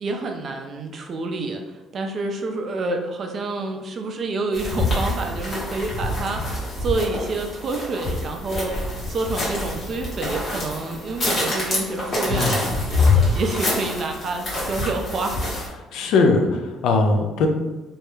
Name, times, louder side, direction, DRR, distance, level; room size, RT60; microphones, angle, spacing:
voice 1, 0.0-1.6 1.9-6.5 6.8-8.8 9.1-15.4, right 3 dB, 45° right, 4 dB, 0.3 m, -28 dB
sound 1, 4.5-15.7, left 2 dB, 40° left, 1.0 m, -25 dB
voice 2, 12.3-12.8 15.9-17.5, left 3 dB, 75° left, 3 dB, 0.3 m, -20 dB
2.2 x 2.0 x 2.9 m, 1.1 s
cardioid pair, 110°, 0 cm